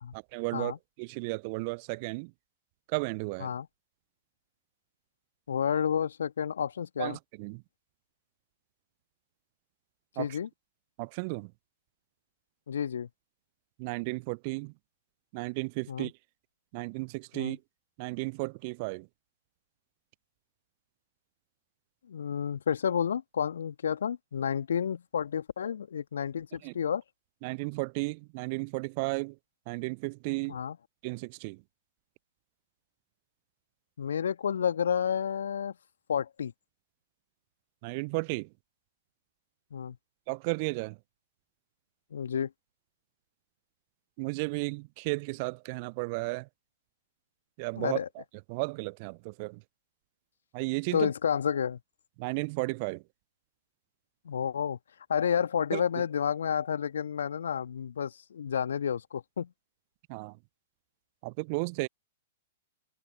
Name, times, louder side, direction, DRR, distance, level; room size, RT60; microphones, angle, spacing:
voice 1, 0.1-2.3 2.9-3.5 7.0-7.6 10.2-10.3 11.0-11.5 13.8-14.7 15.3-16.1 16.7-17.6 18.0-19.1 26.6-26.7 27.4-29.4 29.7-30.6 31.0-31.6 37.8-38.5 40.3-41.0 44.2-46.5 47.6-48.2 48.5-49.6 50.5-51.1 52.2-53.0 55.7-55.8 60.1-60.4 61.2-61.9, right 29 dB, 40° right, 0.5 m, -34 dB
voice 2, 5.5-7.2 10.2-10.5 12.7-13.1 15.9-16.1 17.3-17.6 22.1-27.0 30.5-30.8 34.0-35.7 36.1-36.5 39.7-40.0 42.1-42.5 47.8-48.1 50.9-51.8 54.3-54.8 55.1-59.5, left 8 dB, 65° left, 2.0 m, -30 dB
figure-of-eight pair, 105°, 0 cm